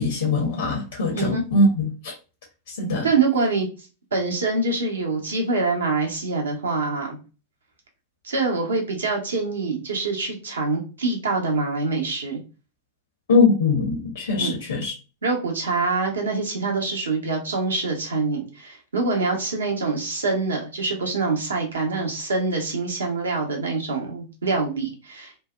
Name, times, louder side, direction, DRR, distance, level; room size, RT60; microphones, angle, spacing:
voice 1, 0.0-2.1 2.7-3.1 13.3-14.9, left 3 dB, 65° left, 0.6 m, -22 dB
voice 2, 1.1-1.4 3.0-3.7 4.1-7.2 8.2-12.4 14.4-14.6 15.2-25.4, right 3 dB, 70° right, 0.8 m, -25 dB
2.7 x 2.1 x 2.2 m
figure-of-eight pair, 90°, 0 cm